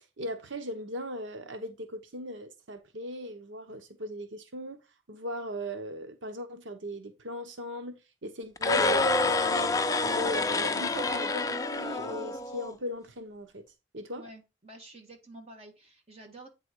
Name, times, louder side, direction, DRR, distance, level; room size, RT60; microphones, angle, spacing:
voice 1, 0.0-4.8 5.1-13.7 13.9-14.2, equal, 90° right, 1.0 m, -38 dB
Gibbering Mouther Shriek, 8.6-12.7, left 3 dB, 20° left, 0.5 m, -27 dB
voice 2, 14.2-16.5, right 1 dB, 35° right, 2.1 m, -49 dB
8.8 x 4.0 x 4.5 m
head